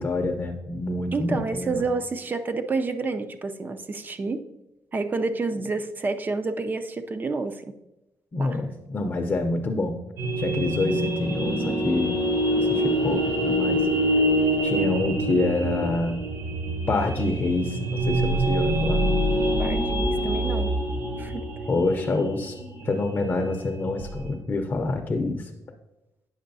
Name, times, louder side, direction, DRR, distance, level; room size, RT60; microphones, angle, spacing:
voice 1, 0.0-1.9 8.3-10.0 10.4-12.2 12.6-13.9 14.6-16.2 16.9-19.1 21.7-22.6 22.8-25.5, left 2 dB, 35° left, 4 dB, 0.6 m, -27 dB
voice 2, 1.1-4.4 4.9-7.7 8.4-8.6 19.6-20.7 21.2-21.4, right 3 dB, 30° right, 9 dB, 0.5 m, -29 dB
sound 1, 10.2-24.3, right 1 dB, 65° right, 2.4 m, -25 dB
8.7 x 6.1 x 2.7 m, 0.93 s
cardioid pair, 120°, 6 cm